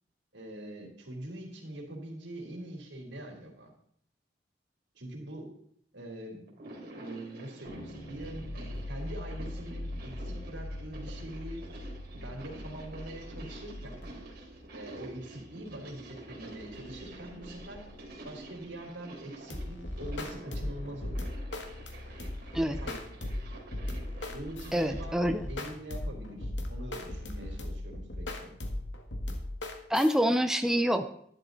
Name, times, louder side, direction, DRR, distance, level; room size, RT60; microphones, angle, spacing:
voice 1, 0.3-3.7 5.0-5.5 5.9-6.4 7.0-11.6 12.1-14.0 14.7-17.8 18.2-21.3 22.8-23.0 24.3-25.2 25.5-28.5, right 1 dB, 85° right, 0 dB, 3.4 m, -43 dB
sound 1, 6.5-25.1, right 1 dB, 55° right, 3.0 m, -49 dB
sound 2, 7.6-19.4 20.6-25.8, left 1 dB, 60° left, 4.3 m, -44 dB
sound 3, 19.5-30.2, left 1 dB, 90° left, 1.8 m, -37 dB
voice 2, 24.7-25.5 29.9-31.1, equal, 5° right, 7 dB, 0.6 m, -26 dB
12.0 x 11.0 x 4.0 m, 0.65 s
head